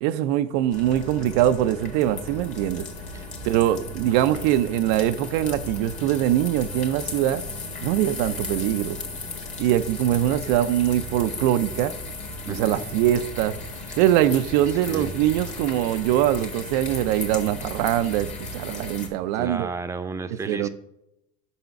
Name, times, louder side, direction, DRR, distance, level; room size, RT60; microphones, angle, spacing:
voice 1, 0.0-2.9 3.4-7.4 7.8-9.0 9.6-11.9 12.5-13.6 14.0-19.7 20.5-20.7, right 12 dB, 75° right, 0.4 m, -23 dB
sound 1, 0.7-19.1, left 2 dB, 35° left, 1.6 m, -35 dB
voice 2, 12.5-12.9 13.9-14.0 14.9-15.1 19.3-20.7, right 4 dB, 15° right, 0.6 m, -33 dB
5.6 x 4.1 x 5.7 m
supercardioid pair, 95°, 21 cm